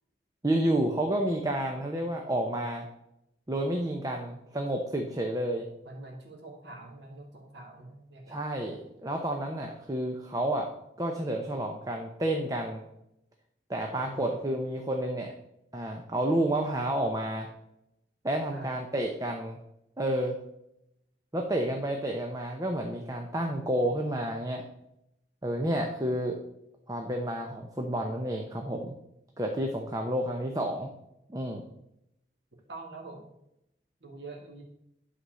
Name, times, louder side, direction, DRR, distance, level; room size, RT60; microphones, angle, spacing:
voice 1, 0.4-2.9 3.5-5.7 8.3-10.7 11.0-12.8 13.7-15.3 15.7-17.5 18.2-19.6 20.0-20.4 21.3-24.7 25.4-26.4 26.9-28.9 29.4-30.9 31.3-31.6, right 1 dB, 20° right, 2 dB, 0.8 m, -30 dB
voice 2, 5.8-8.4 14.0-14.3 18.5-18.7 32.7-33.3 34.0-34.6, right 2 dB, 90° right, -1 dB, 1.8 m, -45 dB
11.0 x 4.2 x 6.3 m, 0.82 s
head